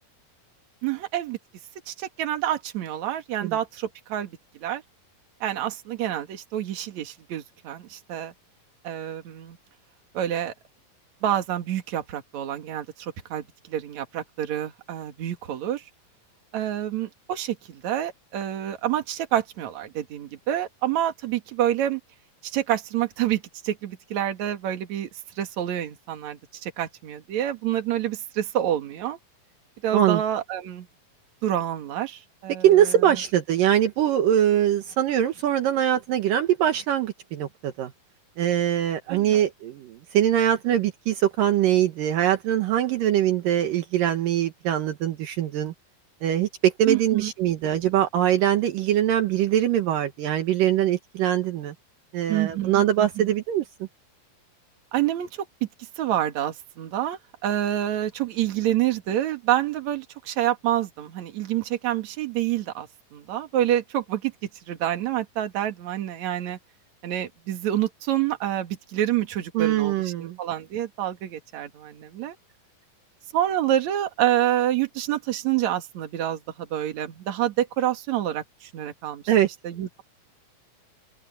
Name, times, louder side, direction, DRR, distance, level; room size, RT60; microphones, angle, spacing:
voice 1, 0.8-1.4 1.9-4.8 5.4-8.3 8.8-9.6 10.1-10.5 11.2-15.8 16.5-22.0 22.4-25.1 25.4-29.2 29.8-30.9 31.4-33.2 39.1-39.5 46.9-47.3 52.3-53.3 54.9-55.7 56.0-64.3 64.7-66.6 67.0-72.4 73.3-79.2 79.6-79.9, right 12 dB, 55° right, 2.9 m, -27 dB
voice 2, 32.6-37.9 38.4-45.7 46.2-51.7 52.1-53.6 69.5-70.4 79.3-79.5, right 11 dB, 75° right, 2.8 m, -22 dB
open air
omnidirectional pair, 4.2 m